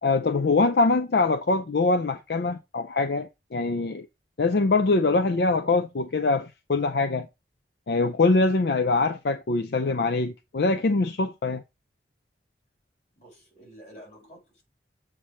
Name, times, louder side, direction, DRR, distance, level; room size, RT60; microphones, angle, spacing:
voice 1, 0.0-4.1 4.4-7.3 7.9-11.6, left 3 dB, 65° left, 0.5 m, -23 dB
voice 2, 13.2-14.6, equal, 40° left, 4.3 m, -49 dB
7.5 x 3.3 x 5.5 m
head